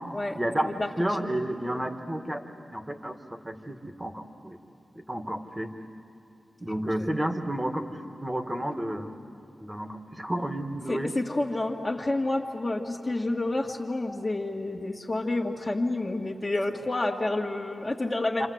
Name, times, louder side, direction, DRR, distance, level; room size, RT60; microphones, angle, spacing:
voice 1, 0.3-0.7 1.0-4.6 5.0-5.7 6.6-9.2 9.6-11.1 18.4-18.5, right 1 dB, 15° right, 5 dB, 2.0 m, -31 dB
voice 2, 10.9-18.5, left 2 dB, 30° left, -4 dB, 2.0 m, -29 dB
27.5 x 27.0 x 8.0 m, 2.8 s
cardioid pair, 65°, 0 cm